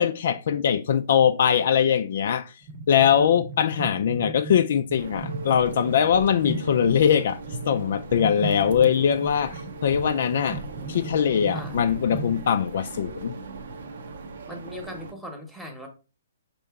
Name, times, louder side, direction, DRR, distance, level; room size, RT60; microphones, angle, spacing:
voice 1, 0.0-2.6 2.9-7.4 7.6-10.6 10.9-13.3, left 8 dB, 60° left, 0.3 m, -22 dB
sound 1, 2.6-12.8, right 3 dB, 30° right, 0.6 m, -37 dB
sound 2, 5.0-15.1, right 3 dB, 75° right, 0.7 m, -39 dB
voice 2, 11.5-11.8 14.4-15.9, left 1 dB, ahead, 1.0 m, -39 dB
5.3 x 2.9 x 3.5 m
hypercardioid pair, 145°, 0 cm